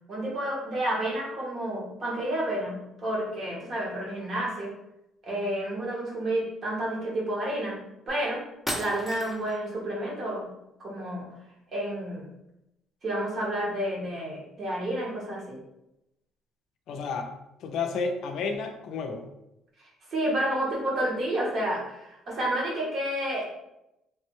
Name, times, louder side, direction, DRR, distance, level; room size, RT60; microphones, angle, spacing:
voice 1, 0.1-4.7 5.2-7.8 8.1-8.4 8.7-10.5 10.8-11.3 11.7-12.3 13.0-15.6 20.1-23.6, right 1 dB, 40° right, -3 dB, 1.0 m, -30 dB
sound 1, 8.1-8.2 8.7-9.6, left 1 dB, 5° left, 0.5 m, -34 dB
voice 2, 16.9-17.3 17.6-19.3, left 4 dB, 70° left, 5 dB, 0.4 m, -31 dB
3.2 x 2.2 x 2.9 m, 0.88 s
cardioid pair, 130°, 0 cm